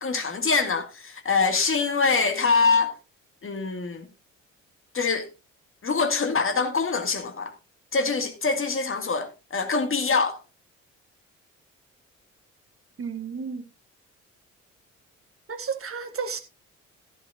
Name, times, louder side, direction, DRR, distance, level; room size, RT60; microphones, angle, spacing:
voice 1, 0.0-2.9 3.4-4.1 4.9-5.3 5.8-7.5 7.9-10.4, left 4 dB, 35° left, 2.2 m, -24 dB
voice 2, 13.0-13.7 15.5-16.4, right 5 dB, 35° right, 1.7 m, -32 dB
15.5 x 10.5 x 2.6 m
figure-of-eight pair, 45°, 38 cm